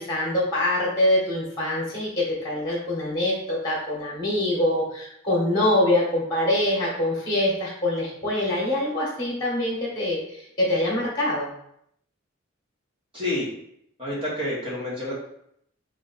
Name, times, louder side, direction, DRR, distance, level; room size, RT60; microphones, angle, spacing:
voice 1, 0.0-11.5, left 1 dB, 20° left, -5 dB, 1.2 m, -24 dB
voice 2, 13.1-13.5 14.0-15.1, left 1 dB, 25° right, -6 dB, 1.1 m, -28 dB
4.8 x 2.6 x 4.0 m, 0.73 s
head